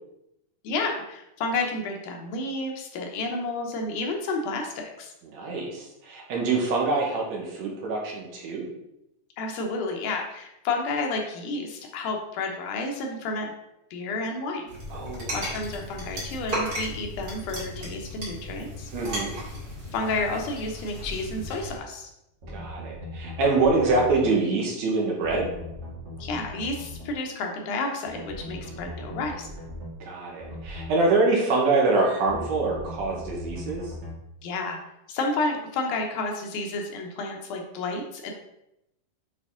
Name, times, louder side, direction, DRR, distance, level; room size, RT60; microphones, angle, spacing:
voice 1, 0.6-5.1 9.4-13.5 13.9-14.7 15.3-18.9 19.9-22.1 26.2-29.5 34.4-34.8 35.1-38.3, left 3 dB, 75° left, 1 dB, 2.4 m, -31 dB
voice 2, 5.3-8.7 14.9-15.6 18.9-19.3 22.5-25.5 30.0-33.9, right 3 dB, 70° right, -1 dB, 2.1 m, -25 dB
sound 1, 14.7-21.8, equal, 30° right, 2.6 m, -35 dB
sound 2, 21.3-21.5 22.4-24.3 25.2-27.1 28.0-29.9 30.4-30.9 32.3-34.2, left 1 dB, 50° right, 2.5 m, -39 dB
8.4 x 3.5 x 3.7 m, 0.84 s
omnidirectional pair, 3.7 m